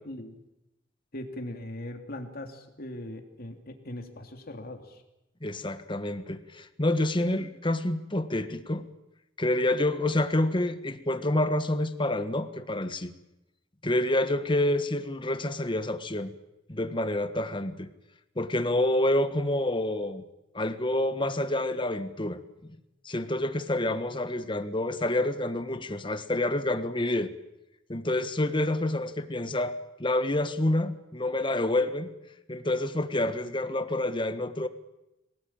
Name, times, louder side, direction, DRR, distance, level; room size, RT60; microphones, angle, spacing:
voice 1, 0.0-0.4 1.1-5.0, left 1 dB, 50° left, 4 dB, 3.1 m, -40 dB
voice 2, 5.4-8.9 9.4-13.1 13.8-16.3 16.7-17.9 18.4-20.2 20.5-22.7 23.0-27.3 27.9-32.1 32.5-34.7, left 1 dB, 25° left, 10 dB, 1.4 m, -28 dB
25.5 x 18.5 x 9.0 m, 0.93 s
head